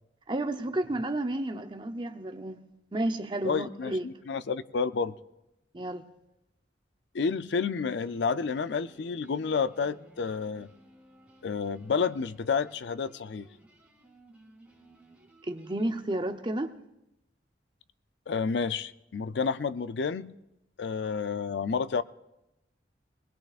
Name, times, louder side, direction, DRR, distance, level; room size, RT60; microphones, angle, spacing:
voice 1, 0.3-2.6 2.9-4.1 5.7-6.0 15.5-16.7, right 1 dB, 25° right, 0.7 m, -31 dB
voice 2, 3.4-5.2 7.1-10.7 11.4-13.5 18.3-20.4 20.8-22.0, left 5 dB, 75° left, 0.5 m, -30 dB
sound 1, 7.9-15.9, right 1 dB, 10° right, 2.6 m, -58 dB
21.0 x 20.5 x 2.4 m
head